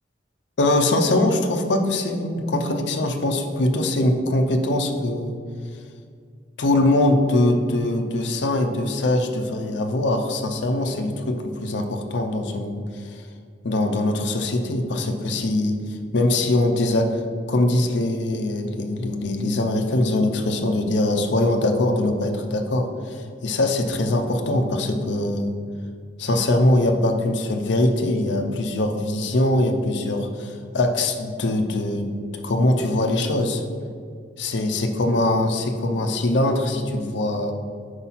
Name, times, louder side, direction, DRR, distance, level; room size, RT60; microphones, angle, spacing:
voice 1, 0.6-5.4 6.6-13.3 13.6-17.2 17.5-23.2 23.4-25.5 26.2-32.1 32.4-33.6 34.4-37.5, left 1 dB, 75° left, 4 dB, 0.6 m, -22 dB
4.8 x 4.1 x 5.7 m, 2.2 s
head